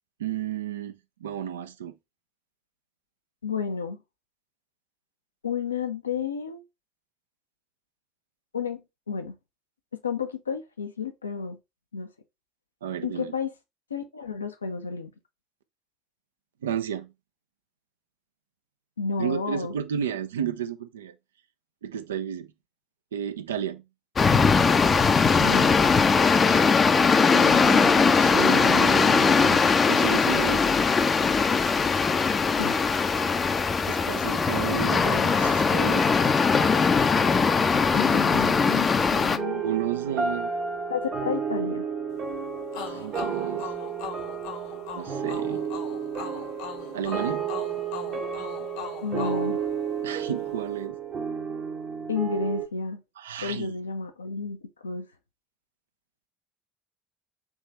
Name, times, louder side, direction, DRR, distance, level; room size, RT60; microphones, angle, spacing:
voice 1, 0.2-1.9 12.8-13.3 16.6-17.1 19.2-21.1 21.8-22.5 23.1-23.8 26.2-26.7 27.3-30.8 33.9-36.1 39.6-40.5 42.8-43.7 44.9-45.7 46.9-47.5 50.0-51.0 53.2-53.7, right 9 dB, 75° right, 0.4 m, -32 dB
voice 2, 3.4-4.0 5.4-6.6 8.5-9.4 9.9-11.6 11.9-12.1 13.0-13.5 13.9-15.1 19.0-19.8 25.4-25.7 32.6-32.8 37.9-39.6 40.9-41.9 49.0-49.6 52.1-53.0 53.4-55.1, left 5 dB, 80° left, 0.6 m, -31 dB
sound 1, 24.2-39.4, left 5 dB, 30° left, 0.5 m, -21 dB
sound 2, 39.4-52.7, right 6 dB, 40° right, 0.9 m, -32 dB
sound 3, 42.7-50.3, left 7 dB, 65° left, 1.0 m, -40 dB
3.6 x 3.1 x 4.0 m
figure-of-eight pair, 60°, 0 cm